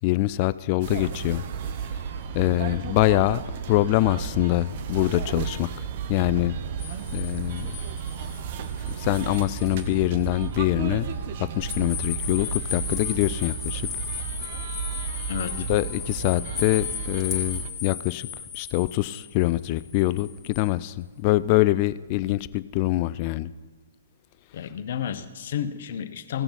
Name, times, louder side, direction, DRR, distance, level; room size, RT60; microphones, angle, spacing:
voice 1, 0.0-1.4 2.3-3.4 3.7-6.6 7.1-7.7 9.0-11.1 11.4-13.9 15.6-18.3 18.5-23.5, left 17 dB, 40° left, 16 dB, 0.4 m, -24 dB
sound 1, 0.8-17.7, right 7 dB, 45° right, 0.8 m, -33 dB
sound 2, 6.8-10.0 10.4-10.5 11.7-20.7, left 8 dB, 20° left, 1.6 m, -36 dB
voice 2, 15.3-15.7 24.5-26.4, left 9 dB, 55° left, 10 dB, 0.9 m, -31 dB
16.0 x 6.8 x 5.7 m, 1.5 s
hypercardioid pair, 125°, 0 cm